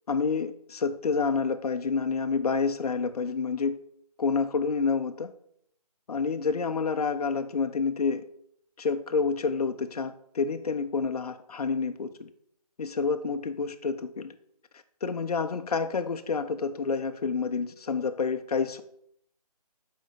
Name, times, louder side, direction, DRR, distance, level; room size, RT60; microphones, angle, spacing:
voice 1, 0.1-3.8 4.2-5.3 6.1-8.2 8.8-12.3 12.8-14.3 15.0-18.8, left 5 dB, 70° left, 7 dB, 0.5 m, -28 dB
7.2 x 4.2 x 4.0 m, 0.70 s
hypercardioid pair, 175°, 20 cm